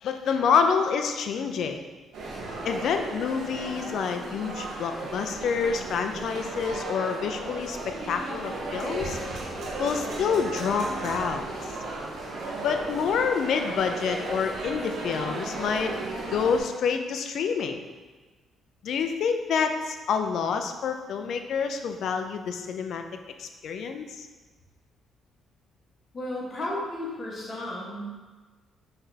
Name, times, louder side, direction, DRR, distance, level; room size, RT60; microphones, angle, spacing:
voice 1, 0.0-1.8 2.6-9.2 9.8-11.5 12.6-15.9 16.3-17.8 18.8-23.0 23.4-24.3, left 6 dB, 70° left, 6 dB, 0.4 m, -27 dB
sound 1, 2.1-16.6, right 2 dB, 70° right, 1.0 m, -35 dB
voice 2, 26.1-28.1, left 1 dB, 45° left, -4 dB, 1.4 m, -33 dB
5.8 x 3.2 x 2.8 m, 1.3 s
cardioid pair, 90°, 0 cm